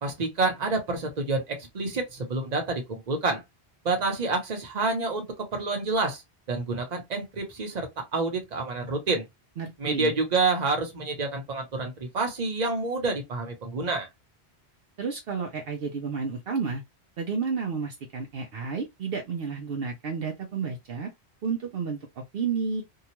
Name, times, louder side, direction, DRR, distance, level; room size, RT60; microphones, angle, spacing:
voice 1, 0.0-3.4 3.8-6.2 6.5-9.2 9.8-14.1, right 3 dB, 40° right, 1.0 m, -28 dB
voice 2, 9.6-10.1 15.0-16.8 17.2-21.1 21.4-22.8, right 5 dB, 65° right, 0.8 m, -31 dB
2.8 x 2.3 x 2.9 m
omnidirectional pair, 1.1 m